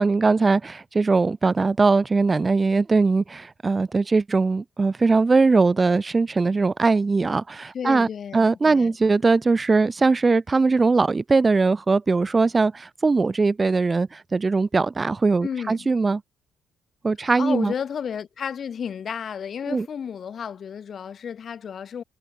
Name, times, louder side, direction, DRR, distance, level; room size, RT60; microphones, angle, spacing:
voice 1, 0.0-8.1 8.3-16.2 17.0-17.7 19.7-19.9, right 3 dB, 25° right, 0.5 m, -20 dB
voice 2, 7.7-9.0 15.4-15.9 17.2-22.0, left 7 dB, 55° left, 3.5 m, -32 dB
cardioid pair, 90°, 0 cm